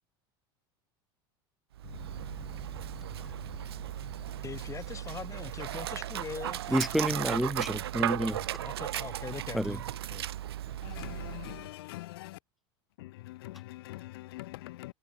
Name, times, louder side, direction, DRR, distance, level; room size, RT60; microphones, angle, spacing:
Dog, 1.7-11.7, right 12 dB, 90° right, 0.5 m, -36 dB
sound 1, 1.8-6.9, left 12 dB, 45° left, 7.9 m, -52 dB
voice 1, 4.4-7.2 8.3-9.8 10.1-10.2 10.7-10.8, left 6 dB, 25° left, 1.8 m, -42 dB
voice 2, 6.7-8.5 9.5-9.8, equal, ahead, 0.8 m, -29 dB
voice 3, 10.8-12.4 13.0-14.9, left 18 dB, 75° left, 3.1 m, -43 dB
hypercardioid pair, 95°, 13 cm